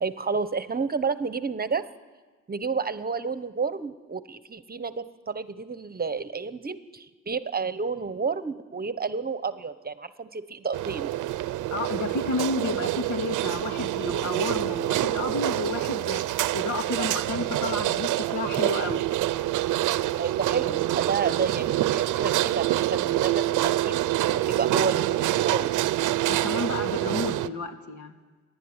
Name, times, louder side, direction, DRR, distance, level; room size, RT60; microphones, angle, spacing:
voice 1, 0.0-1.8 2.5-11.2 20.2-24.0 24.3-25.9, right 5 dB, 30° right, 12 dB, 1.2 m, -30 dB
sound 1, 10.7-27.5, right 15 dB, 80° right, 0.7 m, -26 dB
voice 2, 11.7-16.2 16.5-19.1 26.2-28.1, left 3 dB, 65° left, 5 dB, 2.6 m, -31 dB
29.5 x 11.5 x 9.8 m, 1.4 s
cardioid pair, 90°, 30 cm